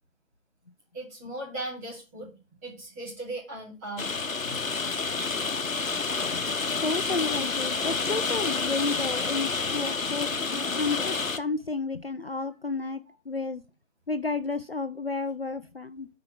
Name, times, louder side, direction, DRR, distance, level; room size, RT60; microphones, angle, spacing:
voice 1, 0.9-2.3 2.6-4.1 4.4-4.7, right 1 dB, 10° right, 2.7 m, -38 dB
Rain, 4.0-11.4, left 4 dB, 80° left, 1.0 m, -29 dB
voice 2, 6.2-6.6 6.8-13.6 14.1-16.1, left 4 dB, 50° left, 0.5 m, -32 dB
8.7 x 4.5 x 6.0 m
figure-of-eight pair, 160°, 40 cm